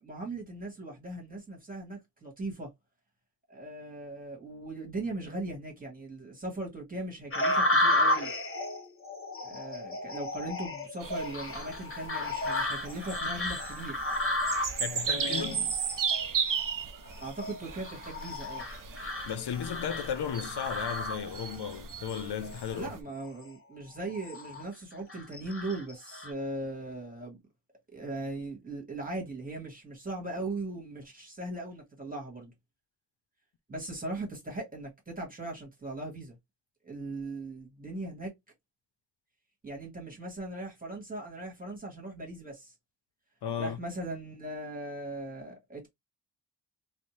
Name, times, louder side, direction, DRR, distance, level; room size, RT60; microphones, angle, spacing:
voice 1, 0.0-2.7 3.5-8.3 9.4-14.0 15.0-15.7 17.2-18.7 22.7-27.4 27.9-32.5 33.7-36.4 36.8-38.3 39.6-42.7 43.6-45.9, right 2 dB, 20° right, 1.3 m, -39 dB
sound 1, 7.3-21.6 22.1-22.7 23.2-23.4 24.0-24.6 25.1-26.3, left 1 dB, 30° left, 0.8 m, -33 dB
sound 2, 11.0-23.0, right 7 dB, 50° right, 0.5 m, -36 dB
voice 2, 14.8-15.7 19.3-23.0 43.4-43.8, left 8 dB, 75° left, 0.5 m, -35 dB
2.6 x 2.0 x 3.0 m
wide cardioid pair, 75°, 41 cm